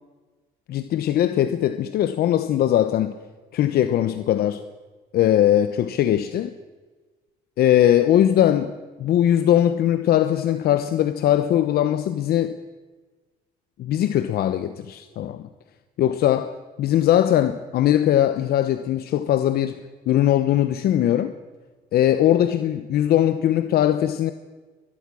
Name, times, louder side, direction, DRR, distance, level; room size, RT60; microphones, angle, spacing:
voice 1, 0.7-3.2 3.5-4.6 5.1-6.5 7.6-12.6 13.8-15.5 16.0-21.3 21.9-24.3, left 11 dB, 65° left, 1.0 m, -20 dB
24.0 x 20.5 x 6.3 m
cardioid pair, 110°, 17 cm